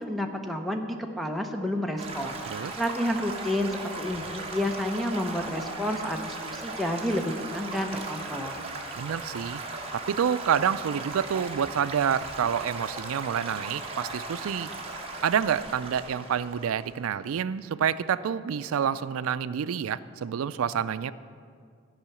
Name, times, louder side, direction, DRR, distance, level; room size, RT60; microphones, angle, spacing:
voice 1, 0.0-8.6, left 1 dB, ahead, 4 dB, 0.6 m, -30 dB
Stream / Gurgling / Trickle dribble, 2.0-17.1, right 2 dB, 30° right, 1.1 m, -38 dB
voice 2, 9.0-9.6 10.1-14.7 15.2-21.1, right 8 dB, 90° right, 15 dB, 0.4 m, -28 dB
12.0 x 5.6 x 8.2 m, 2.2 s
head